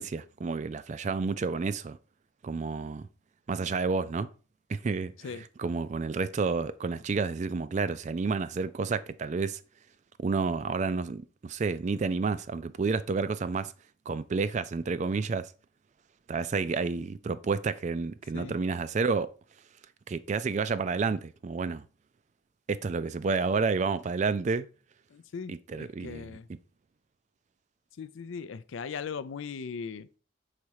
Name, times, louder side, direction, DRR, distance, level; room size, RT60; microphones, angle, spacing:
voice 1, 0.0-2.0 2.4-3.1 3.5-4.3 4.7-5.1 5.6-9.6 10.2-13.7 14.1-15.5 16.3-19.3 20.1-21.9 22.7-24.7 25.5-26.6, right 4 dB, 35° right, 0.3 m, -30 dB
voice 2, 25.1-26.5 28.0-30.1, left 6 dB, 80° left, 0.4 m, -39 dB
5.0 x 4.1 x 4.6 m
head